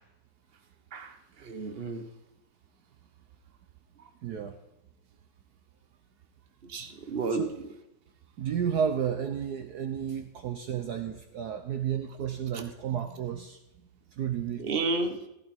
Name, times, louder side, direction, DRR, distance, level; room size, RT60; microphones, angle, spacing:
voice 1, 1.4-2.0 6.7-7.4 14.6-15.2, right 3 dB, 35° right, 6 dB, 1.3 m, -31 dB
voice 2, 4.2-4.6 7.3-7.6 8.4-13.6 14.1-14.7, right 8 dB, 60° right, 7 dB, 1.3 m, -32 dB
15.0 x 14.0 x 4.5 m, 0.92 s
omnidirectional pair, 2.0 m